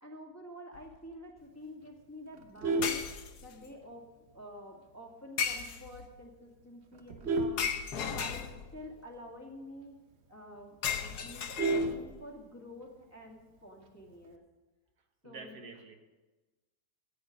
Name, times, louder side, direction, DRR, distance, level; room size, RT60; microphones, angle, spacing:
voice 1, 0.0-3.0 3.4-4.1 4.3-7.7 8.1-9.9 10.3-14.4 15.2-15.6, equal, 10° left, -2 dB, 2.0 m, -49 dB
sound 1, 0.7-1.0 2.8-3.7 5.4-6.1 7.6-8.9 10.8-12.1, left 7 dB, 70° left, 1.4 m, -35 dB
Vehicle horn car horn honking, 2.3-3.8 4.3-4.5 4.9-5.0 5.4-5.5 5.8-6.1 6.7-8.5 8.9-9.0 9.3-9.4 9.8-9.9 10.2-10.3 10.6-12.6 13.8-14.3, right 2 dB, 45° right, 1.1 m, -33 dB
voice 2, 15.2-16.0, right 4 dB, 65° right, 5 dB, 1.8 m, -47 dB
14.0 x 8.8 x 5.2 m, 1.2 s
omnidirectional pair, 1.8 m